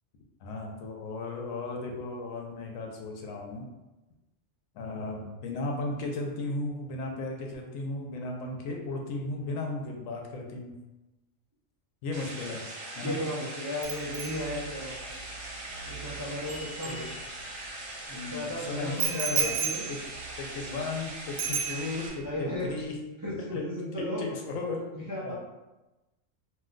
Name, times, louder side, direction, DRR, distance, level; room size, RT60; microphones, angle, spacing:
voice 1, 0.4-3.7 4.7-10.7 12.0-12.7 13.0-13.2 16.9-17.2 18.1-19.6 19.9-20.0 20.4-22.9 23.4-23.6 24.2-24.8 25.2-25.4, left 3 dB, 90° left, 1 dB, 1.0 m, -35 dB
sound 1, 12.1-22.1, right 2 dB, 60° right, 1.1 m, -41 dB
voice 2, 13.0-15.2 15.8-17.1 18.3-19.9 22.2-22.8 23.2-24.3 24.9-25.4, left 1 dB, 35° right, -7 dB, 0.3 m, -35 dB
Bicycle bell, 13.8-17.7 19.0-21.0 21.4-22.3 22.5-22.8, right 7 dB, 80° right, 1.0 m, -34 dB
2.6 x 2.2 x 3.7 m, 1.1 s
omnidirectional pair, 1.4 m